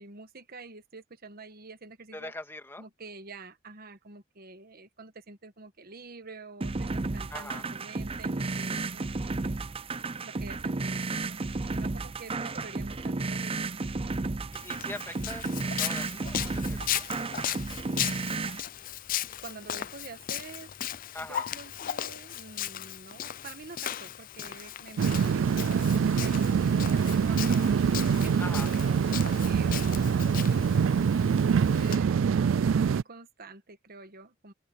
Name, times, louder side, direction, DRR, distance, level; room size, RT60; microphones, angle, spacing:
voice 1, 0.0-2.3 2.8-9.6 10.2-11.4 11.7-13.8 18.5-18.6 19.4-20.8 21.2-27.9 28.2-32.1 32.7-34.5, right 3 dB, 50° right, 1.4 m, -47 dB
voice 2, 2.1-2.8 7.3-7.7 14.5-17.1 21.1-21.5 28.4-28.7, left 2 dB, 10° left, 2.2 m, -42 dB
sound 1, 6.6-18.6, right 3 dB, 30° right, 0.6 m, -33 dB
Walk footsteps, 14.5-32.0, left 11 dB, 45° left, 0.5 m, -37 dB
sound 2, 25.0-33.0, right 6 dB, 75° right, 0.4 m, -25 dB
head